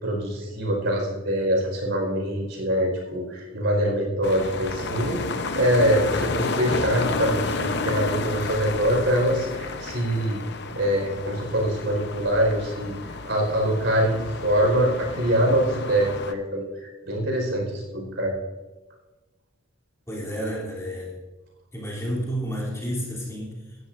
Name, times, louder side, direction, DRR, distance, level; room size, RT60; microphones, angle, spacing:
voice 1, 0.0-5.2 5.5-10.4 10.7-13.0 13.2-18.4, right 1 dB, 60° right, 0 dB, 4.8 m, -24 dB
sound 1, 4.2-16.3, left 3 dB, 55° left, 0.9 m, -31 dB
voice 2, 20.1-21.2 21.7-23.8, equal, 15° left, -5 dB, 3.1 m, -31 dB
18.5 x 12.5 x 2.6 m, 1.2 s
head